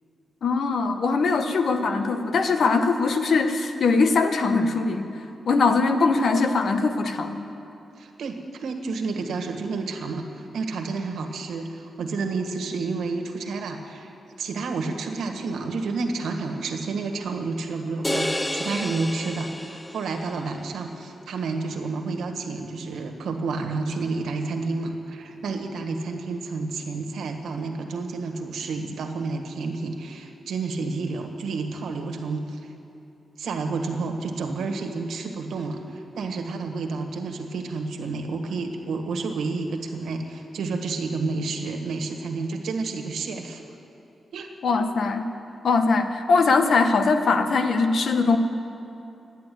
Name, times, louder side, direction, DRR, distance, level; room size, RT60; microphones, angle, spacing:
voice 1, 0.4-5.1 5.5-7.4 44.6-45.3 45.6-48.4, left 4 dB, 65° left, 7 dB, 1.1 m, -21 dB
voice 2, 8.0-14.1 14.4-32.7 33.4-43.6 44.3-44.5, right 3 dB, 90° right, 5 dB, 1.6 m, -30 dB
sound 1, 18.0-20.4, left 1 dB, 10° left, 0.5 m, -30 dB
14.0 x 10.5 x 9.3 m, 2.8 s
cardioid pair, 105°, 0 cm